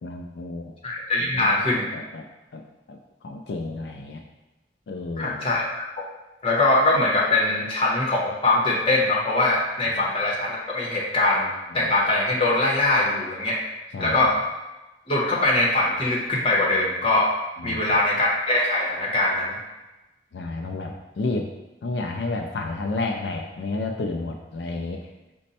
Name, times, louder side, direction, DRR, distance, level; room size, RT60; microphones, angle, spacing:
voice 1, 0.0-0.7 1.2-2.2 2.5-2.6 2.9-4.2 4.9-5.5 9.8-10.1 11.7-11.9 13.9-14.4 17.6-18.0 20.3-21.5 21.8-25.1, left 3 dB, 75° left, 2 dB, 0.4 m, -31 dB
voice 2, 0.8-1.9 5.2-6.0 6.4-11.5 11.7-13.6 14.0-14.3 15.1-17.3 17.6-19.6, left 2 dB, 30° left, -4 dB, 0.9 m, -22 dB
5.1 x 2.1 x 4.1 m, 1.1 s
head